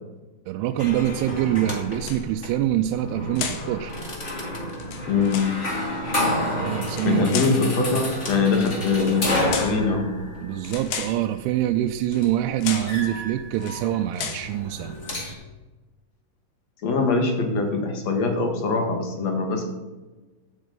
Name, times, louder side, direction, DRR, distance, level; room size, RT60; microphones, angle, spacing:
voice 1, 0.5-3.9 6.6-7.3 8.6-8.7 10.4-15.0, right 12 dB, 90° right, 5 dB, 3.1 m, -25 dB
sound 1, 0.8-15.3, left 1 dB, 35° left, 1.2 m, -31 dB
sound 2, 1.9-2.5 3.4-3.7 4.7-5.6 6.8-7.6 8.6-8.8 9.5-9.8 10.6-11.2 12.1-12.3 12.6-13.0 13.5-13.8 14.1-14.5, left 7 dB, 65° left, 2.4 m, -33 dB
voice 2, 5.1-5.5 7.0-10.1 16.8-19.7, left 4 dB, 50° left, 3 dB, 2.3 m, -23 dB
15.0 x 8.7 x 5.2 m, 1.2 s
omnidirectional pair, 5.4 m